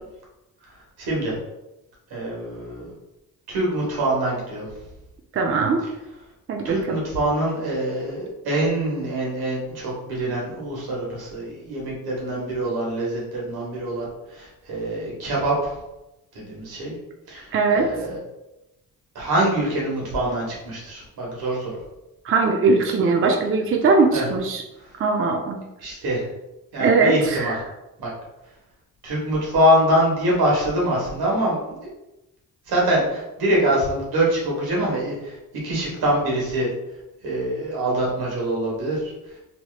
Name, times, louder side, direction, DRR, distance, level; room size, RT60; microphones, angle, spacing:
voice 1, 1.0-1.3 2.1-2.8 3.5-4.7 6.6-15.7 16.3-17.0 17.3-18.2 19.1-21.8 24.1-24.3 25.8-26.3 26.7-27.6 28.0-28.1 29.0-31.9 32.7-35.4 35.6-36.7 37.2-39.1, right 1 dB, 85° right, -4 dB, 1.2 m, -24 dB
voice 2, 5.3-5.8 6.5-7.0 17.5-17.9 22.2-24.6 25.0-25.6 26.8-27.6, right 4 dB, 35° right, 2 dB, 0.5 m, -20 dB
3.2 x 2.9 x 2.2 m, 0.94 s
cardioid pair, 65°, 36 cm